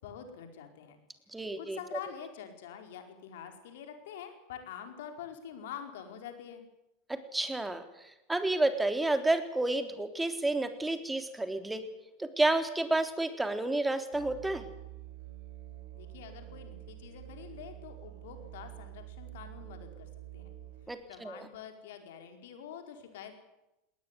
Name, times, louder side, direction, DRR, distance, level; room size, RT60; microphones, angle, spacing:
voice 1, 0.0-1.0 1.6-6.6 15.9-20.6 21.1-23.3, left 8 dB, 75° left, 6 dB, 4.7 m, -46 dB
voice 2, 1.3-2.0 7.1-11.8 12.2-14.6 20.9-21.5, right 2 dB, 10° right, 8 dB, 3.5 m, -30 dB
Musical instrument, 14.1-20.9, right 13 dB, 80° right, 6.0 m, -47 dB
19.5 x 19.5 x 9.8 m, 0.93 s
hypercardioid pair, 90°, 0 cm